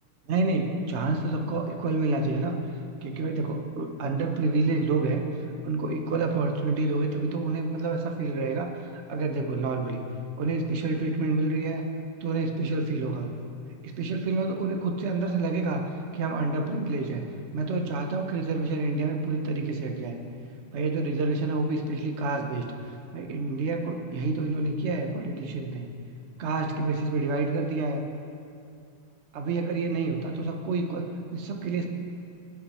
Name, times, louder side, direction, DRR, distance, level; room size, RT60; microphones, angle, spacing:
voice 1, 0.3-2.6 3.0-5.3 5.6-10.1 10.4-11.8 12.2-13.3 13.8-15.8 16.1-17.2 17.5-20.2 20.7-25.8 26.4-28.0 29.3-31.0 31.3-31.9, right 3 dB, 50° right, 3 dB, 0.8 m, -28 dB
16.5 x 8.4 x 4.3 m, 2.4 s
omnidirectional pair, 2.4 m